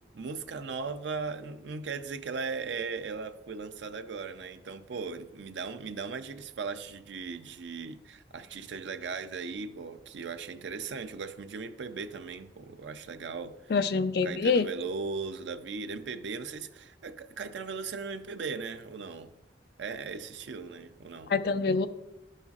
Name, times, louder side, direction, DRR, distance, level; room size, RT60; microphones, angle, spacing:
voice 1, 0.1-13.7 14.2-19.3 19.8-21.3, right 4 dB, 85° right, 0.5 m, -38 dB
voice 2, 13.7-14.7 21.3-21.9, left 4 dB, 60° left, 0.4 m, -25 dB
11.5 x 5.5 x 2.4 m
head